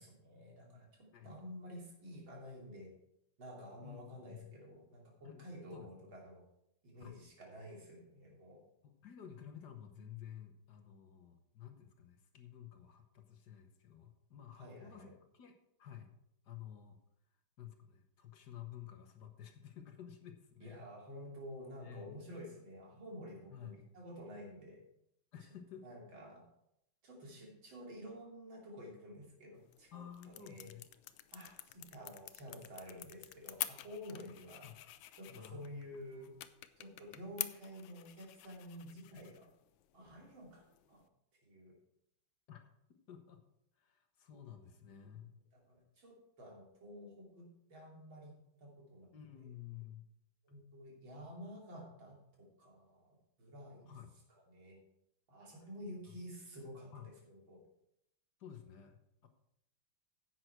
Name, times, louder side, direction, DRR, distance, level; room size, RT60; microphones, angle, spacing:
voice 1, 0.0-2.9 3.4-6.4 6.8-8.6 14.6-15.1 20.6-24.8 25.8-26.4 27.0-30.7 31.3-34.7 35.2-36.3 36.8-39.5 39.9-41.0 41.4-41.7 45.5-49.1 49.4-49.5 50.4-53.9 54.5-54.8 55.3-57.6, equal, 80° right, -2 dB, 3.7 m, -51 dB
voice 2, 3.8-4.5 5.2-6.1 7.0-7.2 8.8-16.1 16.4-17.0 17.6-20.8 21.8-22.2 23.5-23.9 25.3-25.9 29.9-30.9 34.6-34.8 35.3-36.4 42.5-42.6 43.1-43.4 43.8-45.4 49.1-50.1 53.8-54.2 56.1-56.3 56.9-57.1 58.4-59.3, left 10 dB, 60° left, 5 dB, 1.5 m, -52 dB
sound 1, 29.5-41.1, left 13 dB, 80° left, 1.3 m, -49 dB
10.5 x 8.0 x 4.6 m, 0.80 s
omnidirectional pair, 2.1 m